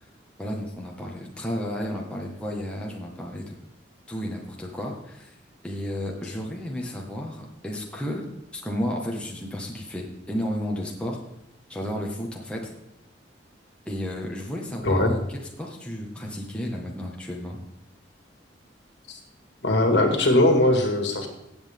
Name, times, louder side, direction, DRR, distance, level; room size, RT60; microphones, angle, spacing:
voice 1, 0.4-3.5 4.1-5.3 5.6-11.2 11.7-12.6 13.8-17.6, equal, 5° left, -2 dB, 1.6 m, -32 dB
voice 2, 14.8-15.2 19.1-19.2 19.6-21.3, left 1 dB, 65° left, 4 dB, 2.0 m, -20 dB
16.0 x 8.1 x 3.6 m, 0.84 s
head